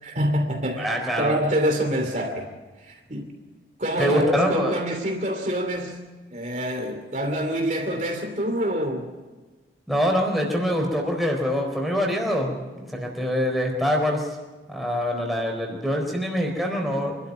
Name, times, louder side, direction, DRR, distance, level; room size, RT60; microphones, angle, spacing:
voice 1, 0.0-0.9 1.2-2.5 2.8-3.3 3.8-6.0 6.3-9.1, equal, 40° right, 3 dB, 2.7 m, -26 dB
voice 2, 0.8-1.4 4.0-4.8 9.9-14.3 14.7-17.2, equal, ahead, -1 dB, 4.1 m, -24 dB
25.5 x 12.5 x 9.5 m, 1.3 s
head